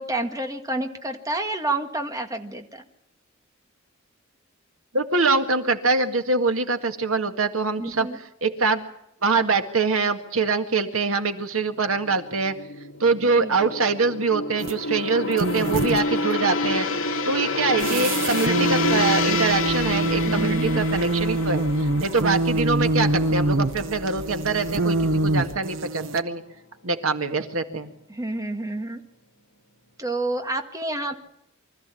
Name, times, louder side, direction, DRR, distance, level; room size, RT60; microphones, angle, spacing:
voice 1, 0.0-2.8 7.8-8.2 13.3-13.7 20.2-20.8 28.1-29.0 30.0-31.2, right 2 dB, 15° right, 5 dB, 1.9 m, -29 dB
voice 2, 4.9-8.1 8.4-8.8 9.2-12.6 13.0-16.9 17.2-26.4 26.8-27.9, right 4 dB, 85° right, 7 dB, 2.0 m, -24 dB
Gong, 11.9-24.4 24.7-25.0, left 3 dB, 65° left, 2.6 m, -29 dB
sound 1, 14.6-14.8 15.3-16.1 17.8-26.2, right 2 dB, 65° right, 0.9 m, -25 dB
sound 2, 19.5-25.6, left 1 dB, 10° left, 4.5 m, -43 dB
24.5 x 14.0 x 8.5 m, 0.80 s
head